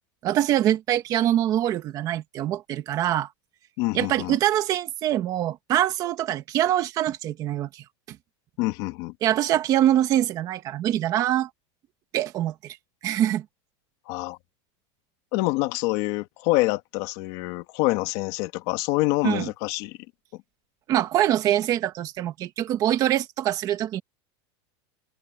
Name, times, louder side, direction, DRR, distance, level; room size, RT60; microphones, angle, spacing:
voice 1, 0.2-3.3 3.9-8.2 9.2-11.5 12.1-12.8 13.0-13.4 19.2-19.5 20.9-24.0, right 12 dB, 25° right, 1.5 m, -24 dB
voice 2, 3.8-4.4 8.6-9.1 14.1-14.4 15.3-20.0 20.3-20.4, left 20 dB, 40° left, 1.8 m, -26 dB
supercardioid pair, 180°, 14 cm